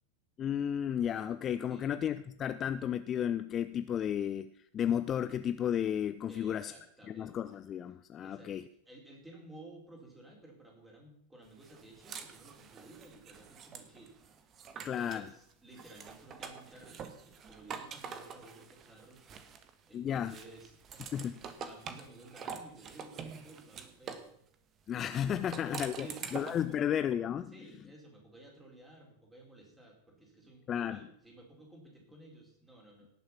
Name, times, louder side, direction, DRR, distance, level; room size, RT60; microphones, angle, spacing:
voice 1, 0.4-6.7 7.1-8.6 14.8-15.2 19.9-20.3 21.1-21.3 24.9-26.1 26.3-27.5 30.7-31.0, left 9 dB, 25° left, 12 dB, 0.5 m, -33 dB
voice 2, 6.3-7.4 8.2-14.2 14.7-19.3 19.9-24.3 25.4-26.9 27.5-33.1, right 2 dB, 10° right, -1 dB, 4.6 m, -54 dB
sound 1, 11.6-15.3 15.7-19.9 20.3-24.3 25.3-26.7, right 6 dB, 30° right, 1.4 m, -46 dB
18.0 x 7.0 x 5.9 m, 0.68 s
figure-of-eight pair, 90°, 0 cm